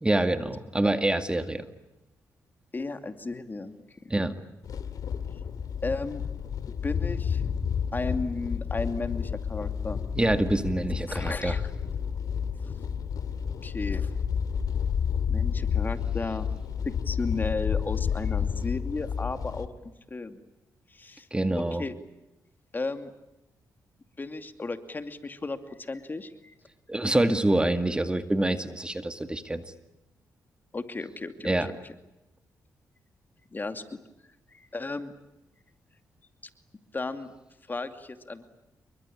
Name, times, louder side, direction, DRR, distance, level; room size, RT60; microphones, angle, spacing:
voice 1, 0.0-1.7 4.1-4.3 10.2-11.5 21.3-21.8 26.9-29.6 31.4-31.7, right 1 dB, 15° right, 9 dB, 2.2 m, -26 dB
voice 2, 2.7-3.8 5.8-6.2 6.8-7.4 7.9-10.0 11.1-11.6 13.6-14.1 15.3-16.5 17.0-20.4 20.9-21.3 21.8-21.9 22.7-23.1 24.2-26.5 30.7-31.8 33.5-33.8 34.5-35.1 36.9-37.3 37.7-38.5, left 3 dB, 30° left, 8 dB, 2.6 m, -34 dB
sound 1, 4.6-19.7, left 7 dB, 70° left, 2.6 m, -30 dB
28.5 x 23.5 x 8.7 m, 0.95 s
cardioid pair, 85°, 7 cm